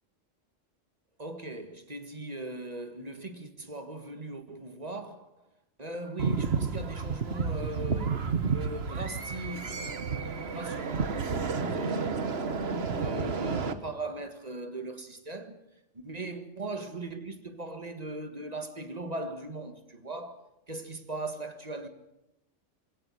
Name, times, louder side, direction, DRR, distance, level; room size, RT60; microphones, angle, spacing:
voice 1, 1.2-5.5 5.8-12.2 12.5-15.6 15.9-21.9, right 2 dB, 30° right, 1.8 m, -39 dB
sound 1, 6.2-13.7, right 5 dB, 55° right, 1.5 m, -31 dB
22.5 x 17.0 x 7.8 m
omnidirectional pair, 1.3 m